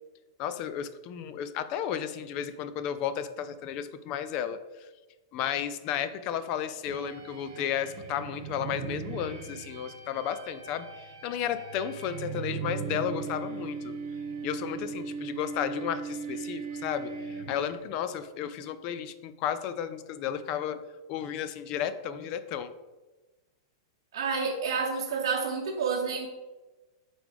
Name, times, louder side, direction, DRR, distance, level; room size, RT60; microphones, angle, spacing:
voice 1, 0.4-4.6 5.3-10.9 11.2-14.0 14.4-17.1 17.5-20.8 21.1-22.7, left 9 dB, 30° left, 12 dB, 0.3 m, -33 dB
sound 1, 6.9-17.9, right 6 dB, 55° right, 1.6 m, -38 dB
voice 2, 24.1-26.3, right 5 dB, 80° right, 0 dB, 0.7 m, -29 dB
8.0 x 3.8 x 3.4 m, 1.2 s
supercardioid pair, 175°, 2 cm